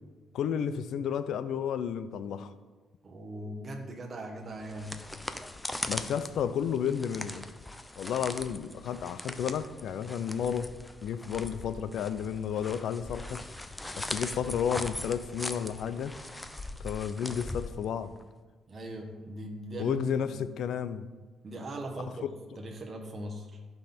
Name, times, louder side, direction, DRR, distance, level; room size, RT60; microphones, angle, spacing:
voice 1, 0.3-2.5 5.9-7.4 8.0-10.7 11.0-13.4 14.0-16.1 16.8-18.1 19.8-21.1, left 8 dB, 75° left, 13 dB, 0.6 m, -32 dB
voice 2, 3.0-4.9 18.7-20.4 21.4-22.3 22.6-23.5, right 1 dB, 35° right, 2 dB, 1.4 m, -39 dB
sound 1, 4.5-18.2, left 1 dB, 10° left, 0.7 m, -40 dB
15.0 x 5.7 x 4.4 m, 1.3 s
cardioid pair, 90°, 0 cm